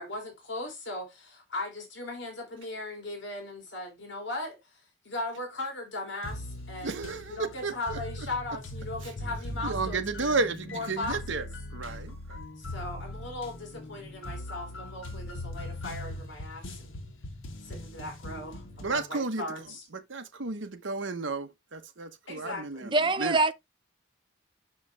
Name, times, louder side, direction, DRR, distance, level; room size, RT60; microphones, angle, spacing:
voice 1, 0.0-4.6 5.0-10.4 10.7-11.5 12.6-17.0 17.6-19.8 22.3-22.9, left 2 dB, 60° left, 2.8 m, -38 dB
sound 1, 6.2-19.0, left 1 dB, 80° left, 1.5 m, -40 dB
voice 2, 6.8-8.0 9.6-11.4 11.7-12.1 18.8-19.4 19.9-23.4, right 3 dB, 65° right, 1.0 m, -32 dB
voice 3, 22.9-23.5, right 3 dB, 25° right, 0.5 m, -24 dB
6.5 x 5.8 x 3.4 m
head